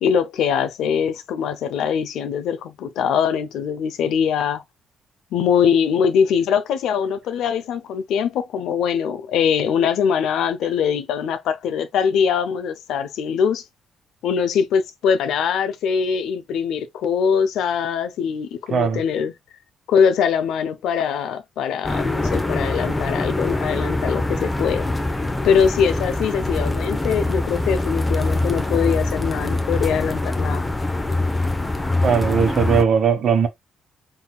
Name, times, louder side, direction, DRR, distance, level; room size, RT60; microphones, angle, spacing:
voice 1, 0.0-4.6 5.3-13.6 14.2-19.3 19.9-24.9 25.4-30.6, left 7 dB, 80° left, 0.6 m, -22 dB
voice 2, 18.7-19.0 32.0-33.5, right 6 dB, 60° right, 1.2 m, -18 dB
sound 1, 21.8-32.8, left 2 dB, 15° left, 0.8 m, -24 dB
4.1 x 3.7 x 2.3 m
cardioid pair, 90°, 0 cm